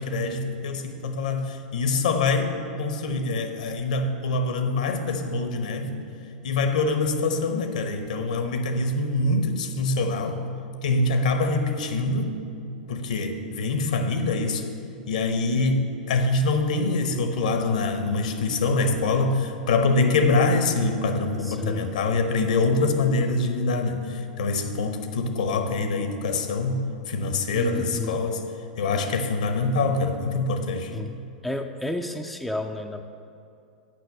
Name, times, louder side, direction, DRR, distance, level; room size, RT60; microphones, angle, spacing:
voice 1, 0.0-6.0 6.4-10.4 10.8-12.4 12.9-14.6 15.1-28.4 28.8-30.9, left 3 dB, 60° left, 7 dB, 0.9 m, -25 dB
voice 2, 21.4-21.9 27.5-28.3 30.9-31.2 31.4-33.0, left 1 dB, ahead, 5 dB, 0.4 m, -31 dB
7.8 x 5.8 x 7.3 m, 2.5 s
figure-of-eight pair, 95°, 5 cm